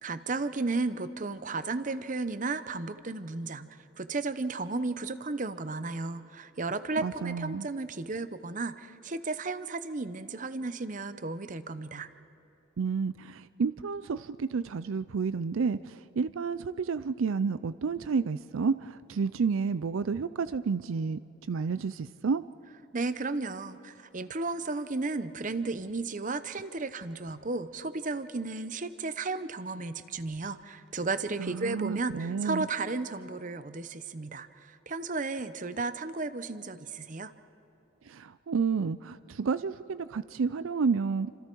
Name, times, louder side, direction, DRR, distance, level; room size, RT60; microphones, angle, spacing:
voice 1, 0.0-3.7 4.0-12.1 22.9-37.3, right 3 dB, 40° right, 12 dB, 0.8 m, -34 dB
voice 2, 7.0-7.7 12.8-21.2 21.5-22.4 31.4-32.7 38.1-41.3, right 5 dB, 75° right, 15 dB, 0.4 m, -30 dB
29.5 x 26.5 x 4.6 m, 2.9 s
head